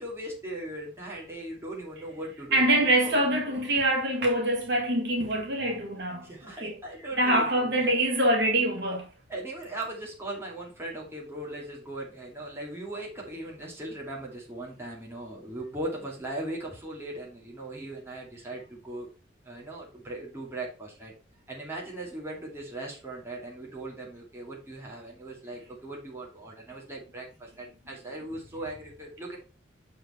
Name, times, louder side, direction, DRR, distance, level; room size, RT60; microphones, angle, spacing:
voice 1, 0.0-3.4 6.2-7.9 9.3-19.1 19.4-21.1 21.5-29.4, right 1 dB, 15° right, 2.3 m, -39 dB
voice 2, 2.5-6.8 7.2-9.1, right 1 dB, 60° right, 1.8 m, -25 dB
6.6 x 4.6 x 4.3 m
head